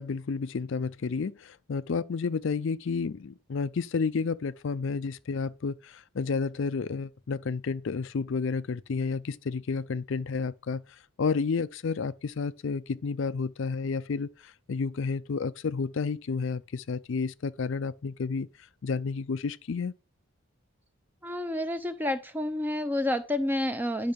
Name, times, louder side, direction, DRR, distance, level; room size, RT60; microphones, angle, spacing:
voice 1, 0.0-10.8 11.2-18.5 18.8-19.9, left 4 dB, 55° left, 0.4 m, -31 dB
voice 2, 21.2-24.1, left 1 dB, 10° right, 0.7 m, -29 dB
10.5 x 5.4 x 5.2 m
head